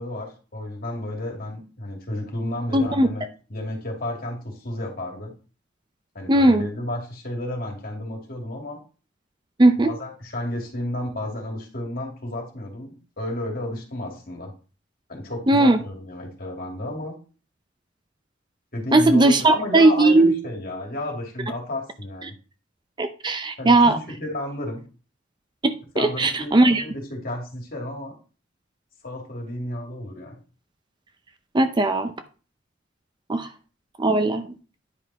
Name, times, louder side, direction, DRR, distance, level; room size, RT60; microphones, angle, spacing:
voice 1, 0.0-3.2 3.5-5.3 6.1-8.8 9.8-14.5 15.1-17.1 18.7-22.3 23.6-24.8 25.9-28.1 29.0-30.4, left 1 dB, 50° left, 1 dB, 2.6 m, -32 dB
voice 2, 2.7-3.1 6.3-6.7 9.6-9.9 15.5-15.8 18.9-20.3 23.0-24.0 25.6-26.8 31.5-32.1 33.3-33.5 34.0-34.4, right 2 dB, 25° right, 9 dB, 0.6 m, -18 dB
10.0 x 5.3 x 4.1 m, 0.35 s
head